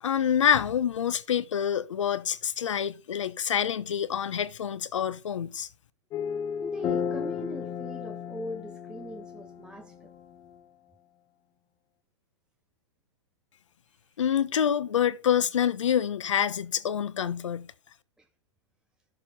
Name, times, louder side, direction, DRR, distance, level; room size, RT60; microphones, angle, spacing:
voice 1, 0.0-5.7 14.2-17.7, left 9 dB, 85° left, 1.0 m, -27 dB
sound 1, 6.1-10.6, left 7 dB, 25° left, 0.8 m, -34 dB
voice 2, 6.6-10.1 14.5-14.6, equal, 5° right, 0.4 m, -41 dB
12.0 x 6.6 x 4.3 m
hypercardioid pair, 130°, 15 cm